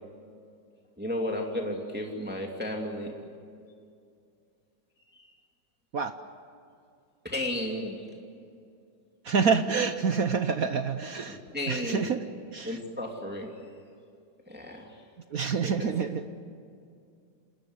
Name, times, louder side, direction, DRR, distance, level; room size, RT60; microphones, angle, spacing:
voice 1, 1.0-3.1 5.1-5.3 7.2-8.1 11.3-12.1 12.6-13.5 14.5-15.0 15.6-15.9, left 1 dB, 5° right, 0 dB, 2.5 m, -33 dB
voice 2, 9.2-11.4 11.7-12.2 12.5-12.8 15.3-16.2, right 5 dB, 55° right, 9 dB, 1.2 m, -27 dB
28.0 x 20.0 x 9.7 m, 2.4 s
omnidirectional pair, 2.1 m